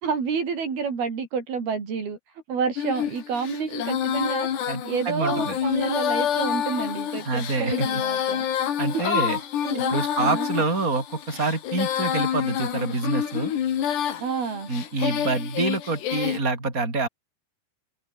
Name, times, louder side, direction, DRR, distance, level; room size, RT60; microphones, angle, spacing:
voice 1, 0.0-8.7 9.3-10.5 14.2-14.7, right 5 dB, 60° right, 6.7 m, -29 dB
Female singing, 2.8-16.4, left 9 dB, 75° left, 4.7 m, -28 dB
voice 2, 4.7-5.6 7.2-7.9 8.8-9.4 9.7-13.5 14.7-17.1, right 3 dB, 20° right, 6.3 m, -26 dB
omnidirectional pair, 4.9 m